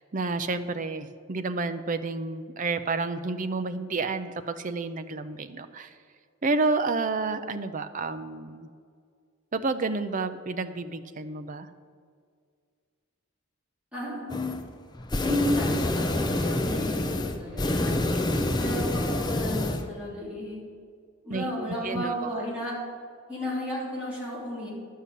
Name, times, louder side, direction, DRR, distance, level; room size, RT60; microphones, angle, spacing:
voice 1, 0.0-5.9 6.4-8.7 9.5-11.7 17.9-18.0 18.3-18.7 21.3-22.1, right 3 dB, 35° right, 9 dB, 0.5 m, -30 dB
voice 2, 13.9-14.5 15.2-18.0 18.6-20.6 21.2-22.8 23.3-24.7, left 1 dB, 5° right, -7 dB, 3.1 m, -33 dB
sound 1, 14.3-14.6 14.9-19.9, left 1 dB, 20° left, 0.6 m, -27 dB
11.5 x 5.6 x 8.3 m, 2.1 s
head